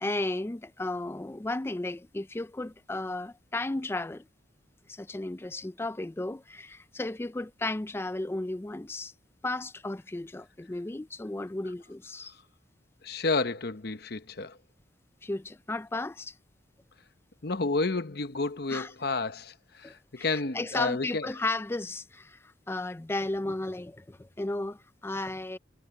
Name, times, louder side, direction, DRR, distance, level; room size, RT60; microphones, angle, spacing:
voice 1, 0.0-4.2 4.9-9.1 9.4-12.3 15.2-16.3 18.7-18.9 19.8-22.4 22.7-25.6, left 2 dB, 10° left, 0.3 m, -34 dB
voice 2, 13.0-14.6 17.4-21.3, left 3 dB, 55° left, 0.9 m, -31 dB
head